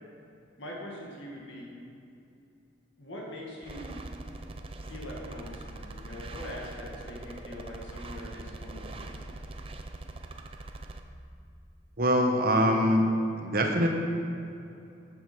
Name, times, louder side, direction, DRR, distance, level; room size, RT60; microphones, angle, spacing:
voice 1, 0.6-1.7 3.0-4.0 4.9-9.2, left 1 dB, 65° left, -3 dB, 1.7 m, -42 dB
sound 1, 3.6-11.0, right 2 dB, 30° right, 0.5 m, -42 dB
voice 2, 12.0-13.1 13.4-13.9, equal, 50° right, 3 dB, 1.0 m, -23 dB
8.1 x 7.6 x 6.0 m, 2.7 s
head